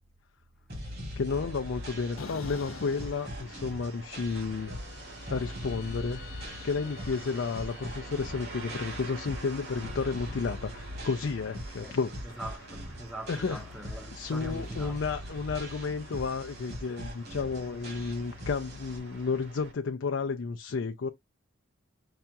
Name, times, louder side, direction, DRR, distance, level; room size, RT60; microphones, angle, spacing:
sound 1, 0.7-19.0, equal, 50° right, 1.9 m, -42 dB
voice 1, 1.0-4.8 5.3-12.1 13.3-13.6 14.1-21.1, left 4 dB, 65° left, 0.4 m, -32 dB
sound 2, 1.3-19.7, right 2 dB, 80° right, 2.6 m, -47 dB
sound 3, 2.2-4.1 4.5-8.8, left 4 dB, 90° left, 0.8 m, -48 dB
voice 2, 12.2-15.0, right 1 dB, ahead, 0.5 m, -42 dB
5.6 x 2.4 x 2.6 m
head